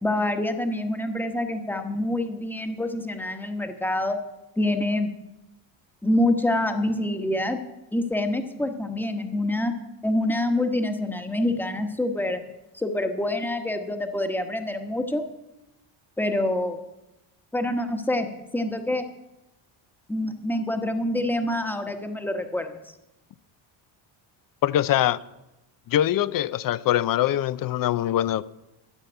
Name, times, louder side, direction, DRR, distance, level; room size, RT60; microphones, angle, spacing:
voice 1, 0.0-4.2 4.6-5.1 6.0-7.6 7.9-9.7 10.0-12.4 12.7-15.2 16.2-16.8 17.5-19.0 20.1-22.8, left 1 dB, 5° left, 1.1 m, -26 dB
voice 2, 24.6-25.2 25.9-28.4, left 12 dB, 45° left, 0.5 m, -23 dB
13.0 x 5.7 x 8.9 m
cardioid pair, 115°, 48 cm